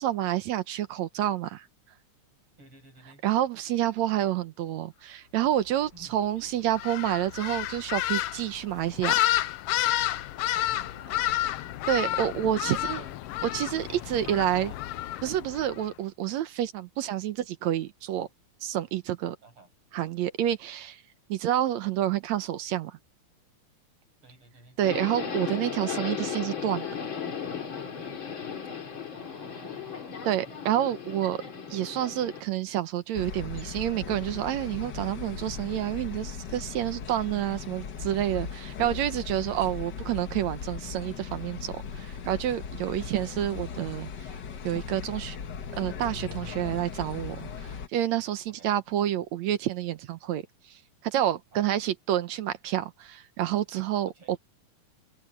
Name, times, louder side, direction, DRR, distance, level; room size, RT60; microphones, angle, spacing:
voice 1, 0.0-1.7 3.2-9.3 11.9-13.0 13.5-14.7 15.2-18.3 18.6-19.4 19.9-21.0 21.3-23.0 24.8-26.9 30.3-31.4 31.7-44.1 44.6-45.4 45.8-50.4 50.7-50.8 51.0-54.4, right 12 dB, 70° right, 2.0 m, -29 dB
voice 2, 2.6-3.2 5.9-6.2 10.5-11.8 12.5-13.2 13.9-14.8 19.4-19.7 24.2-24.8 29.1-30.7 48.5-48.8 51.5-51.9 54.1-54.4, right 2 dB, 45° right, 9.0 m, -53 dB
sound 1, 6.7-15.8, left 14 dB, 80° left, 1.3 m, -30 dB
Subway metro underground, 24.8-32.4, left 7 dB, 40° left, 3.2 m, -36 dB
sound 2, 33.1-47.9, left 6 dB, 55° left, 1.2 m, -38 dB
omnidirectional pair, 3.5 m